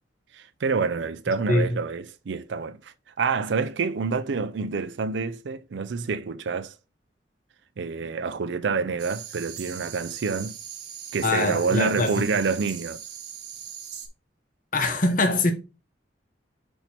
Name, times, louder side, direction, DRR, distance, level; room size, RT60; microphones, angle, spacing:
voice 1, 0.3-6.7 7.8-10.6 11.1-13.0, right 5 dB, 80° right, 0.5 m, -27 dB
sound 1, 9.0-14.1, right 9 dB, 60° right, 1.4 m, -40 dB
voice 2, 11.2-12.3 14.7-15.5, left 2 dB, 50° left, 0.9 m, -23 dB
5.5 x 4.4 x 4.2 m
head